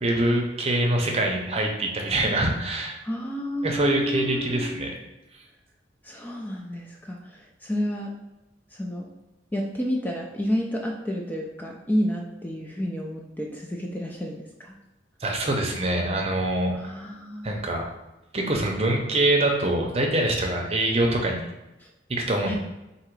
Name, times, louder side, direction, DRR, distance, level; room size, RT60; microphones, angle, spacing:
voice 1, 0.0-3.0 3.6-4.9 15.2-16.7 17.4-17.9 18.3-21.5 22.1-22.5, right 1 dB, 35° right, 1 dB, 0.7 m, -24 dB
voice 2, 3.0-4.8 6.0-8.1 8.7-9.1 9.5-14.7 16.7-17.7 21.8-21.9 22.4-22.5, equal, 10° left, 0 dB, 0.3 m, -30 dB
3.8 x 2.8 x 4.6 m, 1.0 s
head